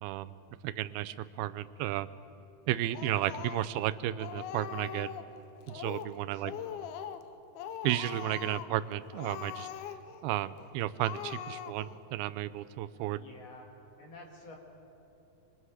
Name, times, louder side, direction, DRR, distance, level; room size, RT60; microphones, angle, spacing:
voice 1, 0.0-0.4 0.6-2.1 2.7-5.1 5.7-6.5 7.8-9.7 10.2-13.2, right 14 dB, 90° right, 14 dB, 2.5 m, -33 dB
Speech, 2.9-3.9 4.2-5.3 5.7-6.2 6.4-7.3 7.6-8.8 9.1-10.2 10.6-10.7 11.0-12.0, left 9 dB, 85° left, 2.7 m, -41 dB
voice 2, 6.3-6.8 13.1-13.7 14.0-14.6, left 2 dB, 45° left, 0 dB, 3.2 m, -50 dB
26.5 x 24.0 x 4.9 m, 2.9 s
omnidirectional pair, 4.3 m